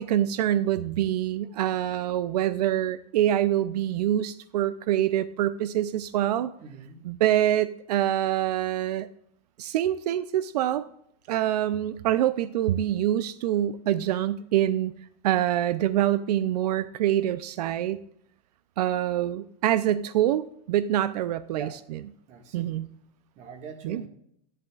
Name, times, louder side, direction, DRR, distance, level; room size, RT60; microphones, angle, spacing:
voice 1, 0.0-6.5 7.0-9.1 9.6-10.9 11.3-14.9 15.2-18.0 18.8-21.7 22.5-22.9 23.8-24.0, right 12 dB, 85° right, 14 dB, 0.5 m, -25 dB
voice 2, 6.6-7.0 21.5-21.7 22.3-22.7 23.3-24.1, right 5 dB, 35° right, 5 dB, 1.6 m, -42 dB
11.5 x 11.0 x 2.3 m, 0.73 s
supercardioid pair, 150°, 20 cm